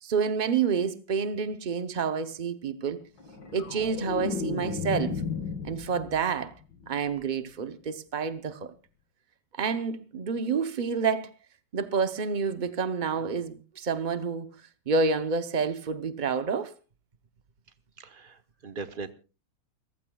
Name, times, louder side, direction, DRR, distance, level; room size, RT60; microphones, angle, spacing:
voice 1, 0.0-3.1 3.5-5.2 5.6-6.5 6.9-8.7 9.6-11.3 11.7-14.5 14.9-16.7, right 5 dB, 65° right, 0.4 m, -28 dB
sound 1, 3.2-6.4 6.7-7.1, left 5 dB, 80° left, 2.7 m, -34 dB
voice 2, 18.0-19.1, right 4 dB, 40° right, 0.8 m, -40 dB
29.5 x 15.0 x 2.3 m
omnidirectional pair, 2.0 m